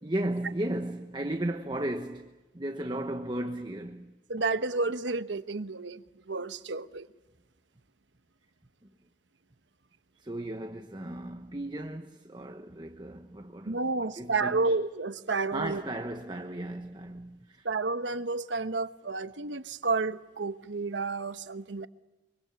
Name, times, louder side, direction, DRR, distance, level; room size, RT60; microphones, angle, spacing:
voice 1, 0.0-4.1 8.8-8.9 10.2-14.8 15.5-17.7, right 1 dB, 25° right, 1.0 m, -35 dB
voice 2, 4.3-6.0 6.3-7.1 13.7-15.8 17.6-21.9, right 3 dB, 90° right, 1.1 m, -31 dB
25.0 x 24.0 x 7.0 m
head